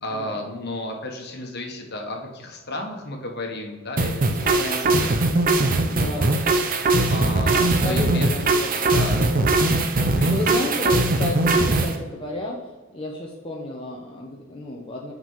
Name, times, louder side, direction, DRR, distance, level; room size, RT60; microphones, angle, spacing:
voice 1, 0.0-5.1 5.8-6.3 7.1-8.3 8.9-9.3 10.1-10.4, left 1 dB, 50° left, 2 dB, 1.4 m, -33 dB
sound 1, 4.0-12.0, right 2 dB, 40° right, 0.7 m, -20 dB
voice 2, 4.3-5.3 5.9-6.7 7.8-9.5 10.3-15.1, left 2 dB, 25° left, -2 dB, 0.9 m, -33 dB
5.9 x 5.3 x 5.6 m, 1.3 s
head